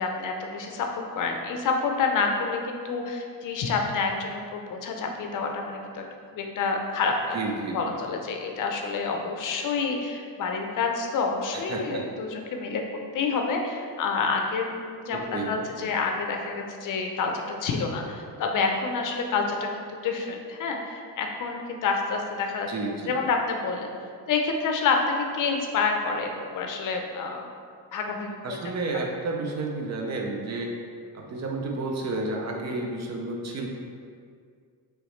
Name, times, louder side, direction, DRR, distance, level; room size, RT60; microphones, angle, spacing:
voice 1, 0.0-6.1 6.3-7.4 7.7-12.8 13.1-22.7 23.1-23.9 24.3-27.5 27.9-28.6, left 4 dB, 55° left, 2 dB, 0.6 m, -28 dB
voice 2, 7.3-8.0 11.5-12.0 15.1-15.9 22.7-23.2 28.4-30.7 31.1-33.7, right 2 dB, 45° right, 1 dB, 0.6 m, -31 dB
4.6 x 3.1 x 3.2 m, 2.1 s
cardioid pair, 115°, 38 cm